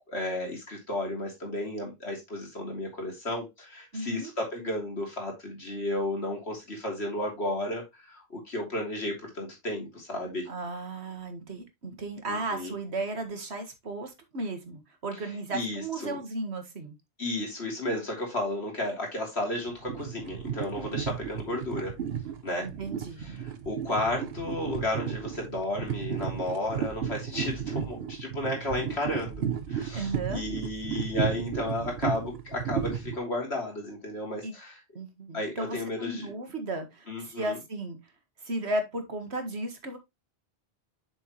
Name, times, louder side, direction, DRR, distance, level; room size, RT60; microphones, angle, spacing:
voice 1, 0.1-10.5 12.3-12.7 15.5-16.2 17.2-21.9 22.4-22.7 23.4-34.8 35.3-36.3 37.1-37.6, left 1 dB, 90° left, 0 dB, 3.4 m, -33 dB
voice 2, 3.9-4.3 10.5-16.9 22.6-23.2 29.9-30.4 34.4-34.5 35.0-38.0 38.4-40.0, right 2 dB, 90° right, 7 dB, 1.9 m, -35 dB
sound 1, 19.7-33.2, right 8 dB, 70° right, 1.1 m, -34 dB
7.3 x 6.4 x 3.0 m, 0.21 s
omnidirectional pair, 1.1 m